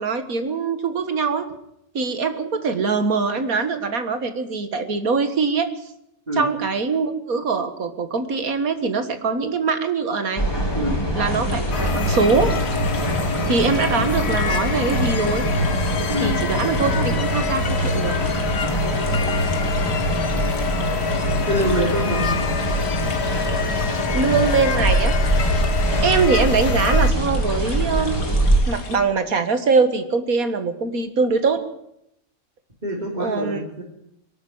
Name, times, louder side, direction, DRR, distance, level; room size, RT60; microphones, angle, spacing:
voice 1, 0.0-1.4 1.9-5.7 6.3-10.4 11.2-12.5 13.5-15.4 16.2-18.2 24.1-25.2 26.0-28.2 28.7-31.6 33.2-33.6, right 4 dB, 85° right, 9 dB, 2.2 m, -22 dB
sound 1, 10.4-28.6, right 1 dB, 15° left, 3.5 m, -23 dB
sound 2, 11.2-29.0, left 3 dB, 85° left, 2.8 m, -38 dB
sound 3, 11.7-27.1, left 7 dB, 50° left, 1.2 m, -28 dB
voice 2, 16.1-16.4 21.5-22.3 32.8-33.8, equal, 30° right, -3 dB, 3.3 m, -24 dB
22.5 x 12.5 x 9.5 m, 0.78 s
omnidirectional pair, 1.5 m